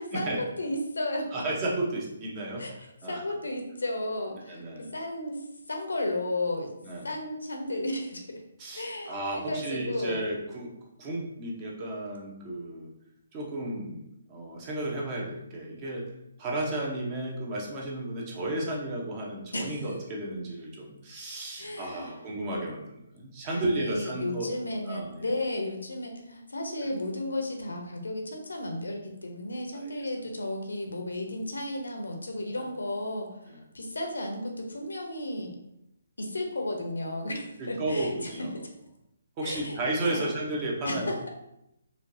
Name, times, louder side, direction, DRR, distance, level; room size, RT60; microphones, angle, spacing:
voice 1, 0.0-1.4 2.6-2.7 3.0-6.7 7.0-8.4 8.7-10.2 19.5-19.9 21.6-22.1 23.5-33.4 33.7-35.5 36.2-38.7 39.4-39.8 40.1-40.3 40.8-41.3, left 1 dB, 75° left, 2 dB, 0.8 m, -33 dB
voice 2, 1.3-2.6 3.0-3.2 4.5-4.8 6.8-7.1 8.6-10.7 11.0-12.9 13.3-14.0 14.3-16.0 16.4-24.5 24.9-25.2 26.8-26.9 29.7-29.9 33.5-33.6 37.6-38.5 39.4-41.1, right 1 dB, 25° right, -2 dB, 0.9 m, -33 dB
4.3 x 2.6 x 2.7 m, 0.82 s
figure-of-eight pair, 140°, 0 cm